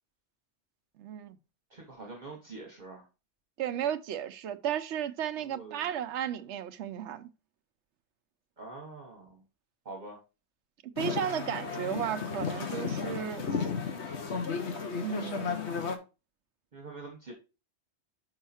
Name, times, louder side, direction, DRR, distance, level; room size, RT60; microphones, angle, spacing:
voice 1, 1.0-1.4 3.6-7.3 11.0-13.7 15.0-15.5, right 9 dB, 80° right, 1.0 m, -34 dB
voice 2, 1.7-3.0 5.5-5.9 8.6-9.3 9.8-10.2 16.7-17.3, right 3 dB, 40° right, 1.5 m, -44 dB
sound 1, 11.0-16.0, left 5 dB, 70° left, 1.4 m, -34 dB
5.6 x 5.6 x 4.3 m
omnidirectional pair, 1.2 m